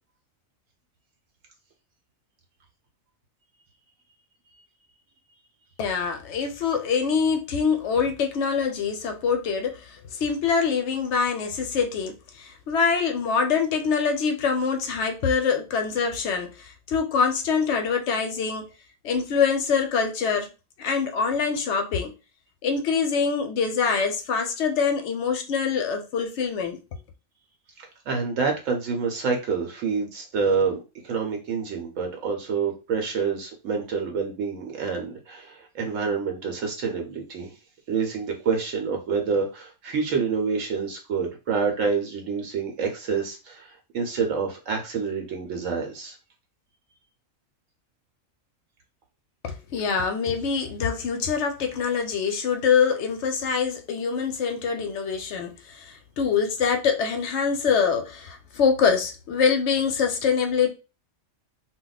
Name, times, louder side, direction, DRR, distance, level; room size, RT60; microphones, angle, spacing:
voice 1, 5.8-18.7 19.0-20.5 20.8-22.1 22.6-26.8 49.4-60.7, left 6 dB, 65° left, 0.8 m, -24 dB
voice 2, 27.8-30.8 31.0-37.5 37.9-46.2, right 5 dB, 75° right, 0.9 m, -27 dB
2.3 x 2.1 x 3.8 m
omnidirectional pair, 1.4 m